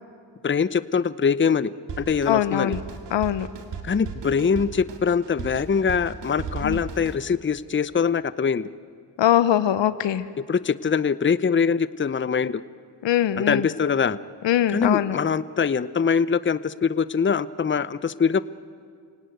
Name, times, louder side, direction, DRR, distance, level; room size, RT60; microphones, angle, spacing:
voice 1, 0.4-2.7 3.8-8.7 10.5-12.6 13.4-14.2 14.7-18.4, left 6 dB, 25° left, 16 dB, 0.7 m, -23 dB
Drum kit, 1.9-7.2, right 5 dB, 70° right, 2.4 m, -36 dB
voice 2, 2.3-2.8 3.1-3.5 6.6-6.8 9.2-10.2 13.0-13.7 14.4-15.2, left 11 dB, 80° left, 15 dB, 0.9 m, -21 dB
28.0 x 18.0 x 9.3 m, 2.1 s
cardioid pair, 55°, 43 cm